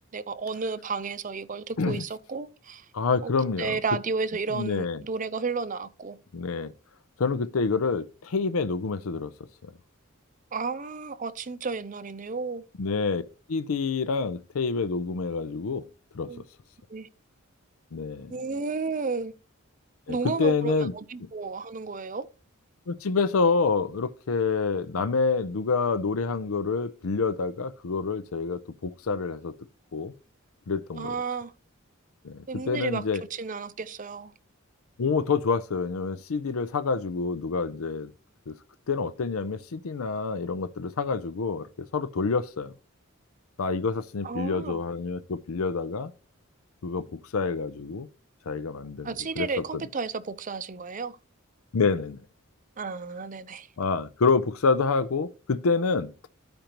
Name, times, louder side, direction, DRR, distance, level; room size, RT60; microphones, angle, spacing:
voice 1, 0.1-2.8 3.2-3.3 3.6-6.2 10.5-12.6 16.3-16.4 16.9-17.1 18.3-19.3 20.1-22.3 31.0-31.5 32.5-33.0 33.3-34.3 44.2-44.8 49.0-51.2 52.8-53.7, right 4 dB, 35° right, 0.5 m, -32 dB
voice 2, 2.9-3.8 4.5-5.0 6.3-6.7 7.2-9.3 9.6-9.7 12.8-13.2 13.5-15.8 16.1-16.3 17.9-18.4 20.1-20.9 22.9-29.5 29.9-30.1 30.7-31.2 32.2-33.2 35.0-38.1 38.5-38.6 38.9-42.7 43.6-46.1 46.8-48.1 48.5-49.8 51.7-52.2 53.8-56.3, left 4 dB, 75° left, 0.5 m, -27 dB
14.0 x 5.1 x 2.9 m
head